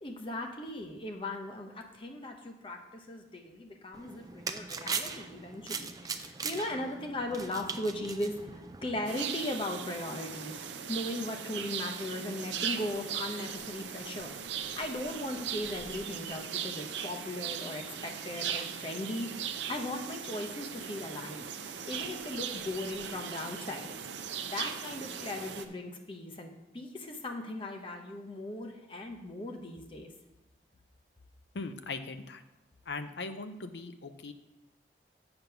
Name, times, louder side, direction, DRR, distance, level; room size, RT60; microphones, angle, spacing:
voice 1, 0.0-19.3 19.7-23.9 24.5-26.5 26.7-30.1, left 1 dB, 30° left, 3 dB, 0.9 m, -38 dB
sound 1, 3.9-9.1, right 5 dB, 20° right, 0.4 m, -39 dB
sound 2, 9.1-25.7, right 8 dB, 85° right, 0.6 m, -39 dB
voice 2, 31.5-32.4 32.9-34.3, left 3 dB, 80° left, 9 dB, 0.6 m, -39 dB
7.9 x 5.2 x 5.8 m, 1.0 s
head